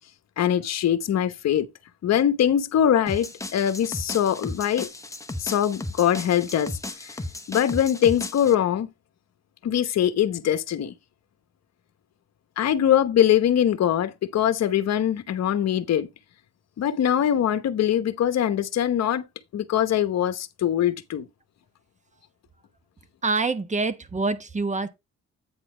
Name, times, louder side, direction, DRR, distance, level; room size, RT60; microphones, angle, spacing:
voice 1, 0.4-1.7 2.0-4.9 5.4-7.1 7.5-8.9 9.6-10.9 12.6-16.1 16.8-19.3 19.5-21.3, left 10 dB, 60° left, 1.0 m, -22 dB
sound 1, 3.1-8.5, left 2 dB, 10° left, 0.9 m, -35 dB
voice 2, 23.2-24.9, right 3 dB, 25° right, 1.1 m, -26 dB
8.8 x 4.1 x 4.9 m
cardioid pair, 90°, 30 cm